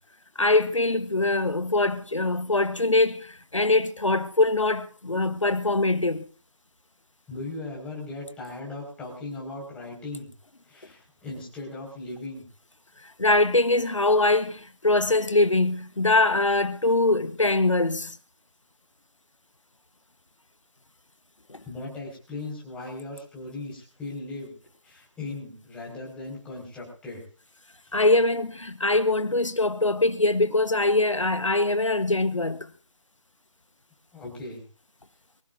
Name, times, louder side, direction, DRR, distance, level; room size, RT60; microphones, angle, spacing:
voice 1, 0.4-6.2 13.2-18.2 21.5-21.6 27.9-32.7, left 2 dB, 90° left, 1.2 m, -23 dB
voice 2, 7.3-10.3 10.6-12.4 21.6-24.6 24.8-27.2 27.9-28.0 34.1-34.6, left 2 dB, 5° left, 5.3 m, -38 dB
24.5 x 15.5 x 2.7 m
figure-of-eight pair, 155°, 16 cm